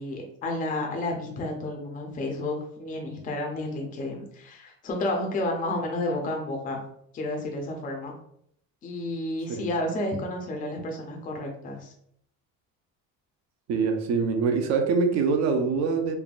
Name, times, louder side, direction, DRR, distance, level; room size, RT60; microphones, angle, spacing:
voice 1, 0.0-6.8 7.1-8.1 8.8-11.9, left 1 dB, 25° left, 1 dB, 0.4 m, -31 dB
voice 2, 13.7-16.2, right 5 dB, 50° right, 5 dB, 0.5 m, -24 dB
3.3 x 2.1 x 2.3 m, 0.69 s
cardioid pair, 150°, 37 cm